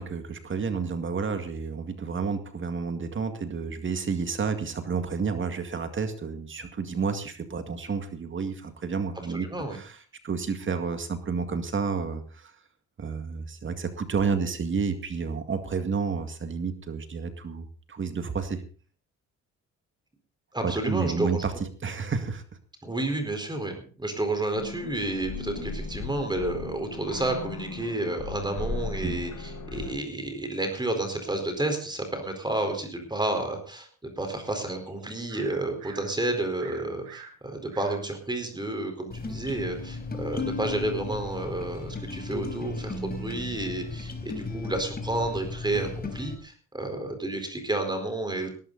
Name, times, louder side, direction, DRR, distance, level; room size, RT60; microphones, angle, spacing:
voice 1, 0.0-9.5 9.7-10.0 10.2-12.5 13.0-18.6 20.6-21.5 21.8-22.4 29.0-29.2, right 5 dB, 40° right, 8 dB, 2.1 m, -30 dB
voice 2, 9.3-9.8 20.5-21.4 22.8-48.5, right 2 dB, 15° right, 6 dB, 4.4 m, -31 dB
sound 1, 24.5-29.9, left 4 dB, 65° left, 5.9 m, -37 dB
sound 2, 34.2-36.1 36.6-38.0 38.4-38.5, right 7 dB, 70° right, 7.0 m, -47 dB
sound 3, 39.1-46.3, left 3 dB, 30° left, 4.0 m, -35 dB
17.5 x 13.5 x 4.1 m, 0.40 s
cardioid pair, 90°, 30 cm